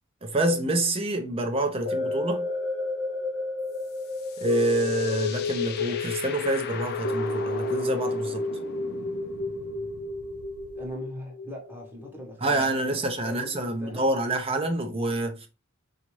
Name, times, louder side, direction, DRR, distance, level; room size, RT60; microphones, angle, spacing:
voice 1, 0.2-2.5 4.4-8.4 12.4-15.5, right 2 dB, 25° right, 0.5 m, -27 dB
sound 1, 1.8-12.2 12.7-12.8, left 3 dB, 85° left, 0.8 m, -31 dB
sound 2, 3.7-10.9, left 6 dB, 45° left, 0.4 m, -41 dB
voice 2, 10.7-14.1, equal, 10° right, 0.9 m, -41 dB
3.9 x 2.4 x 3.0 m
head